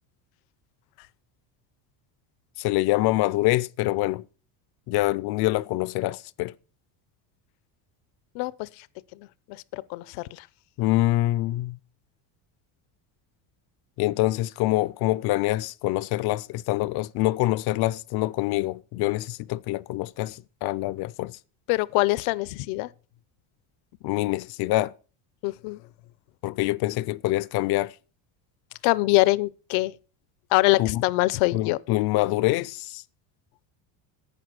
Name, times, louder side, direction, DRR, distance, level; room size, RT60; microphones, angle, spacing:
voice 1, 2.6-4.3 4.9-6.5 10.8-11.8 14.0-21.4 24.0-24.9 26.4-28.0 30.8-31.0 31.5-33.0, left 17 dB, 50° left, 0.5 m, -25 dB
voice 2, 8.3-8.7 9.7-10.4 21.7-22.9 25.4-25.8 28.8-29.9 30.5-31.8, left 21 dB, 80° left, 0.8 m, -23 dB
11.5 x 9.0 x 6.0 m
cardioid pair, 165°, 49 cm